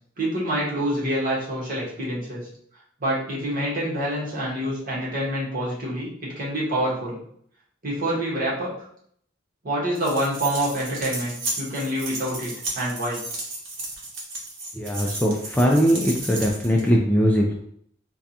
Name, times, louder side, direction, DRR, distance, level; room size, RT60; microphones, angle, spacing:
voice 1, 0.2-2.4 3.0-7.2 7.8-8.7 9.6-13.2, right 1 dB, 50° right, -6 dB, 1.3 m, -27 dB
sound 1, 9.9-16.9, right 2 dB, 70° right, 0.9 m, -34 dB
voice 2, 14.7-17.6, equal, 10° left, -1 dB, 0.3 m, -20 dB
3.4 x 2.3 x 2.7 m, 0.65 s
head